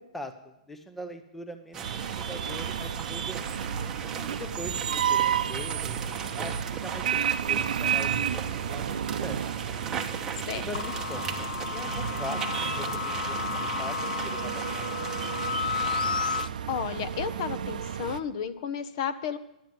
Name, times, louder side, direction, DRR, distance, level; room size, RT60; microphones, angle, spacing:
voice 1, 0.0-3.5 4.3-9.4 10.5-14.0 14.2-15.2, left 1 dB, 5° left, 7 dB, 0.6 m, -42 dB
sound 1, 1.7-16.4, right 6 dB, 15° right, 0.9 m, -38 dB
sound 2, 1.8-18.2, right 9 dB, 70° right, 0.6 m, -32 dB
voice 2, 10.3-10.7 16.7-19.4, left 8 dB, 40° left, 13 dB, 0.7 m, -32 dB
sound 3, 10.7-16.5, left 7 dB, 85° left, 0.4 m, -32 dB
11.0 x 9.1 x 7.6 m, 0.83 s
hypercardioid pair, 160°, 5 cm